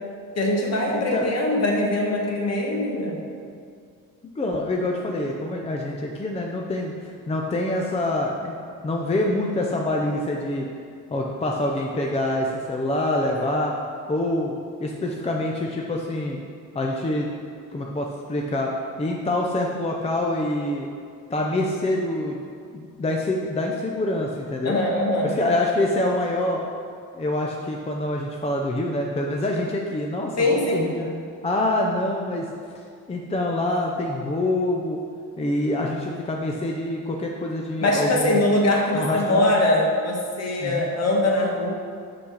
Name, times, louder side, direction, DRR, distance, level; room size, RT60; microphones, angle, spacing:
voice 1, 0.4-3.2 24.6-25.3 30.4-30.9 37.8-41.7, left 1 dB, 45° left, 0 dB, 1.4 m, -22 dB
voice 2, 0.9-1.3 4.4-8.6 8.8-10.7 11.1-13.7 14.1-16.4 16.7-17.3 17.7-18.7 19.0-20.9 21.3-22.4 22.7-24.8 25.2-26.6 27.1-31.1 31.4-32.5 33.1-35.0 35.4-38.4 38.9-39.5 40.6-40.9, left 1 dB, 20° left, 0 dB, 0.6 m, -26 dB
6.0 x 4.9 x 6.4 m, 2.2 s
cardioid pair, 120°, 34 cm